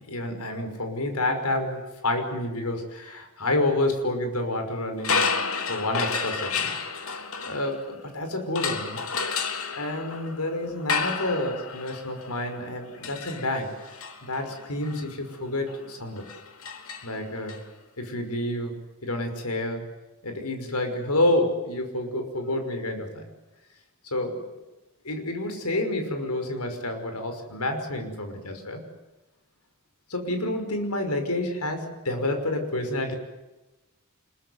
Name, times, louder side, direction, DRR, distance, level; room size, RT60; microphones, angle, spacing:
voice 1, 0.0-5.4 5.7-6.7 7.4-9.0 9.7-16.3 17.0-17.7 18.0-18.7 19.0-19.8 20.2-23.2 24.1-24.5 25.0-28.8 30.1-33.2, left 1 dB, 85° left, 6 dB, 5.7 m, -29 dB
sound 1, 5.0-8.1 8.5-17.6, left 5 dB, 70° left, 3.2 m, -31 dB
26.0 x 23.0 x 9.6 m, 1.0 s
head